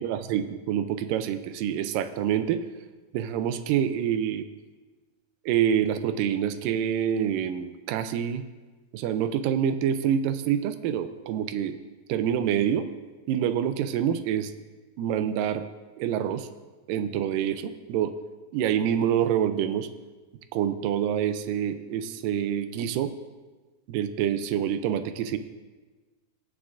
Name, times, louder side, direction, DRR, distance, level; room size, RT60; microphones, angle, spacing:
voice 1, 0.0-2.7 3.1-4.4 5.5-8.5 8.9-11.8 12.1-12.9 13.3-14.5 15.0-15.6 16.0-16.5 16.9-18.2 18.5-19.9 20.5-23.1 23.9-25.4, right 9 dB, 85° right, 10 dB, 2.0 m, -26 dB
17.5 x 9.5 x 2.5 m, 1.3 s
omnidirectional pair, 4.3 m